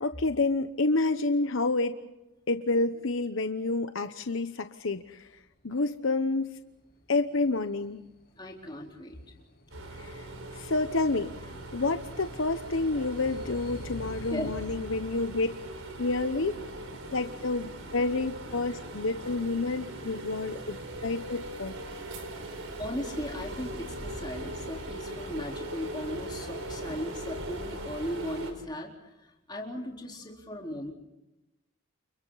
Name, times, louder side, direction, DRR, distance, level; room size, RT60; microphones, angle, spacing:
voice 1, 0.0-2.0 2.5-5.3 5.6-6.6 7.1-8.0 10.0-11.3 11.7-15.5 16.0-16.5 17.1-20.8 21.0-21.7, left 3 dB, 65° left, 9 dB, 1.0 m, -29 dB
sound 1, 6.7-18.0, equal, 45° left, 7.1 m, -48 dB
voice 2, 8.4-9.3 14.3-14.5 22.8-30.9, equal, 20° left, 0 dB, 4.0 m, -37 dB
sound 2, 9.7-28.5, right 1 dB, 70° right, 5.0 m, -40 dB
30.0 x 29.0 x 4.1 m, 0.95 s
head